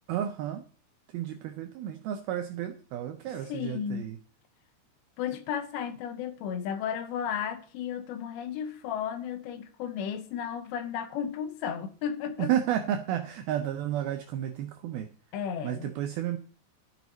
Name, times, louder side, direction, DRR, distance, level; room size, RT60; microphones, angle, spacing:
voice 1, 0.1-0.6 1.1-4.2 12.4-15.1 15.6-16.4, right 11 dB, 85° right, 2.1 m, -32 dB
voice 2, 3.5-4.1 5.2-12.5 15.3-15.9, left 8 dB, 75° left, 3.0 m, -34 dB
13.0 x 9.4 x 4.1 m
omnidirectional pair, 5.3 m